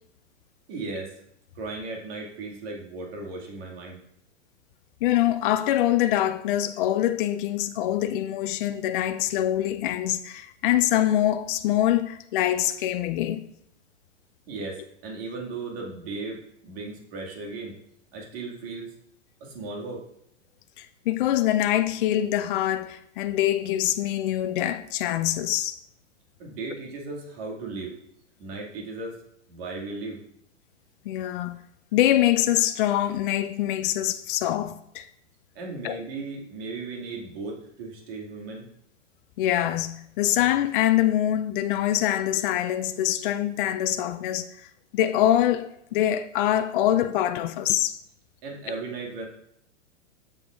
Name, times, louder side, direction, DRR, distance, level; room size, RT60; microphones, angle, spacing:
voice 1, 0.7-1.1 1.6-4.0 14.5-17.7 18.1-18.9 19.4-20.0 26.4-27.9 28.4-29.2 29.5-30.2 35.6-38.7 48.4-49.3, right 3 dB, 50° right, 2.1 m, -36 dB
voice 2, 5.0-13.4 20.8-25.7 31.1-31.6 31.9-35.1 35.8-36.0 39.4-44.7 44.9-48.0, left 12 dB, 45° left, 0.4 m, -24 dB
7.7 x 7.2 x 2.4 m
hypercardioid pair, 110°, 37 cm